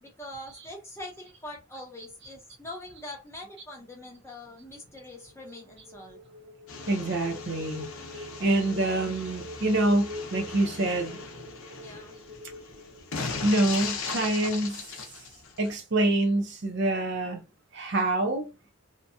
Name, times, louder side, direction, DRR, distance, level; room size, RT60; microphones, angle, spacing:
voice 1, 0.0-6.2 11.8-12.2, left 1 dB, 10° left, 0.7 m, -43 dB
sound 1, 4.8-13.7, left 2 dB, 35° right, 1.2 m, -45 dB
sound 2, 6.7-15.7, left 4 dB, 70° left, 0.6 m, -38 dB
voice 2, 6.9-7.9 8.1-11.2 13.4-14.9 15.6-17.4 17.7-18.5, right 2 dB, 55° right, 0.6 m, -26 dB
2.7 x 2.2 x 2.6 m
head